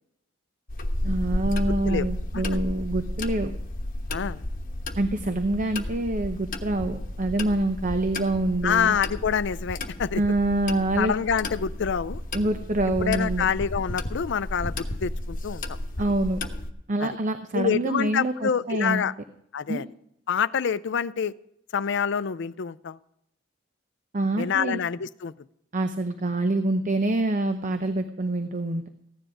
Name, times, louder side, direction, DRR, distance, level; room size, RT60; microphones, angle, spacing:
sound 1, 0.7-16.7, left 1 dB, 45° left, 1.1 m, -32 dB
voice 1, 1.0-3.5 5.0-9.0 10.1-11.1 12.3-13.5 16.0-16.4 16.9-19.0 19.7-19.8 24.1-24.8 25.7-28.9, right 2 dB, 40° right, 8 dB, 0.7 m, -26 dB
voice 2, 4.1-4.4 5.3-5.4 8.6-10.2 11.0-12.2 13.0-15.6 17.0-17.2 17.5-19.1 19.5-19.9 20.3-21.3 21.7-23.0 24.4-25.3, left 7 dB, 65° left, 15 dB, 0.5 m, -26 dB
15.5 x 10.0 x 4.9 m, 0.78 s
head